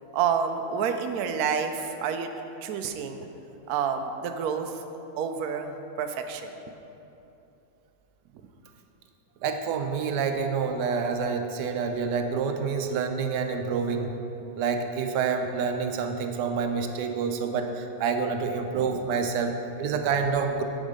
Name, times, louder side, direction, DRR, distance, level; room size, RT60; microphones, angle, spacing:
voice 1, 0.1-2.3 2.6-3.2 3.7-4.8 5.2-6.5 18.7-19.0, right 7 dB, 90° right, 6 dB, 0.8 m, -29 dB
voice 2, 9.4-14.1 14.6-20.6, right 5 dB, 70° right, 5 dB, 1.0 m, -28 dB
9.9 x 5.2 x 5.1 m, 2.9 s
omnidirectional pair, 2.2 m